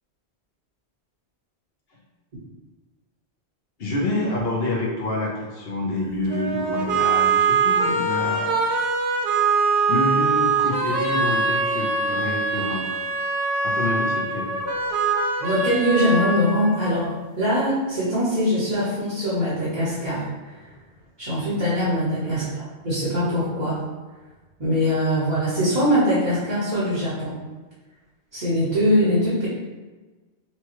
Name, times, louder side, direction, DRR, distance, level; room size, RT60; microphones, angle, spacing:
voice 1, 3.8-8.6 9.9-13.0 13.6-14.6 22.2-22.7, left 2 dB, 65° left, -2 dB, 1.0 m, -27 dB
sound 1, 6.3-17.3, right 4 dB, 75° right, 0.9 m, -23 dB
voice 2, 15.4-20.7 21.2-22.5 22.8-23.8 24.6-27.3 28.3-29.5, equal, 45° right, -11 dB, 1.2 m, -22 dB
5.7 x 2.2 x 3.0 m, 1.3 s
omnidirectional pair, 1.1 m